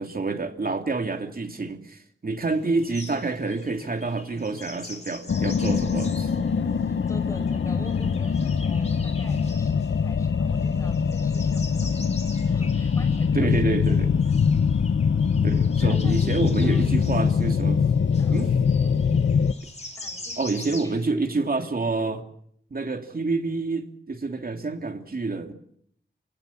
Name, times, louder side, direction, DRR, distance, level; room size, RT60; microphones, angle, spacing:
voice 1, 0.0-6.3 13.3-14.1 15.4-17.9 18.3-18.5 20.4-22.2 22.7-25.5, right 3 dB, 50° right, 5 dB, 2.8 m, -28 dB
sound 1, 2.4-21.1, left 2 dB, 35° left, 3.6 m, -44 dB
sound 2, 5.3-19.5, left 6 dB, 80° left, 1.0 m, -23 dB
voice 2, 6.9-12.0 12.5-14.0 15.8-16.8 18.2-18.9 20.0-21.2 21.5-21.6, left 1 dB, 15° left, 7 dB, 6.0 m, -46 dB
28.5 x 17.5 x 7.2 m, 0.69 s
wide cardioid pair, 85°, 19 cm